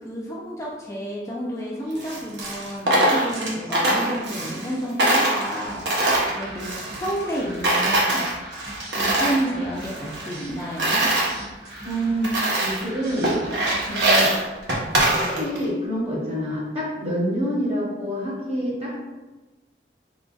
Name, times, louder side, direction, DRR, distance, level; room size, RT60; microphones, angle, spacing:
voice 1, 0.0-5.8 6.2-8.2 8.9-11.1 15.1-15.5, right 1 dB, 15° left, -5 dB, 0.4 m, -30 dB
Coin (dropping), 1.9-4.7 5.0-7.4 7.6-9.4 9.8-11.3 11.8-11.9 12.2-12.9 13.2-15.6, right 1 dB, 80° right, 0.9 m, -23 dB
sound 1, 5.7-14.4, right 1 dB, 60° right, 1.3 m, -41 dB
voice 2, 11.6-13.3 13.9-14.6 15.0-19.0, equal, 35° right, -5 dB, 1.2 m, -27 dB
4.0 x 3.9 x 2.3 m, 1.1 s
head